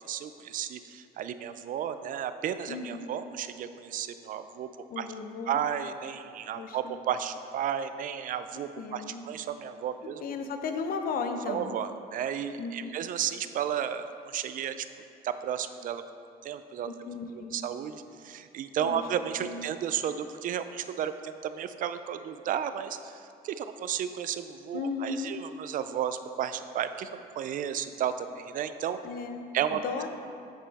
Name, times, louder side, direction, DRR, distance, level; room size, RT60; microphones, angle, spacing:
voice 1, 0.1-4.7 5.0-5.1 5.5-10.2 11.5-14.9 15.2-16.0 16.4-27.1 27.4-29.0 29.5-29.8, right 9 dB, 55° right, 11 dB, 0.4 m, -33 dB
voice 2, 2.7-3.1 4.9-5.6 6.5-7.0 8.8-9.2 10.2-11.8 12.6-12.9 16.9-17.6 18.8-19.0 19.4-19.7 24.7-25.3 29.0-30.1, left 4 dB, 60° left, 6 dB, 0.7 m, -35 dB
8.9 x 5.5 x 4.1 m, 2.5 s
cardioid pair, 110°, 17 cm